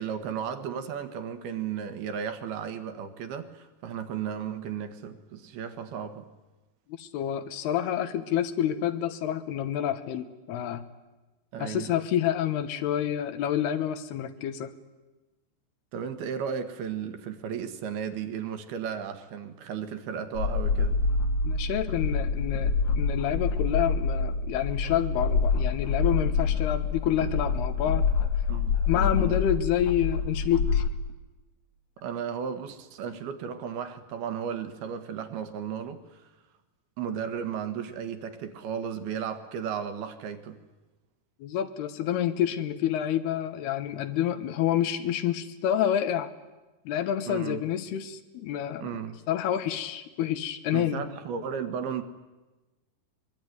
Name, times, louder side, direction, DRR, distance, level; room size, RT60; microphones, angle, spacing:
voice 1, 0.0-6.3 11.5-11.9 15.9-21.0 28.5-29.4 32.0-36.3 37.0-40.6 47.3-47.6 48.8-49.2 50.7-52.0, right 7 dB, 70° right, 3.3 m, -34 dB
voice 2, 6.9-10.9 11.6-14.8 21.4-28.1 28.9-30.8 41.4-46.3 46.9-48.9 49.3-51.1, left 10 dB, 75° left, 3.1 m, -28 dB
sound 1, 20.3-30.9, left 4 dB, 55° left, 2.3 m, -26 dB
24.0 x 22.0 x 9.6 m
omnidirectional pair, 4.8 m